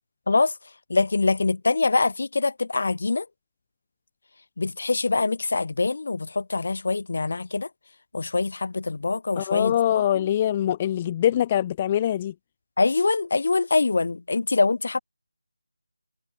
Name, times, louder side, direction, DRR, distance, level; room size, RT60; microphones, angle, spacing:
voice 1, 0.9-3.3 4.6-7.7 8.1-10.0 12.8-15.0, left 3 dB, 55° left, 2.8 m, -24 dB
voice 2, 9.4-12.3, left 11 dB, 20° left, 0.6 m, -23 dB
figure-of-eight pair, 170°, 0 cm